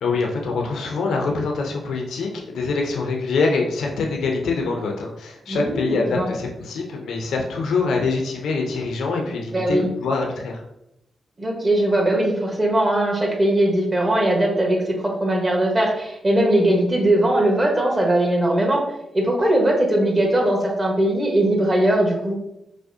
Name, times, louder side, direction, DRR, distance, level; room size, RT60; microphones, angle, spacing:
voice 1, 0.0-10.6, left 4 dB, 85° left, 1 dB, 0.5 m, -24 dB
voice 2, 5.5-6.3 9.5-9.9 11.4-18.8 19.1-22.4, right 1 dB, 25° right, -1 dB, 1.0 m, -20 dB
4.8 x 2.1 x 2.7 m, 0.84 s
cardioid pair, 85°, 0 cm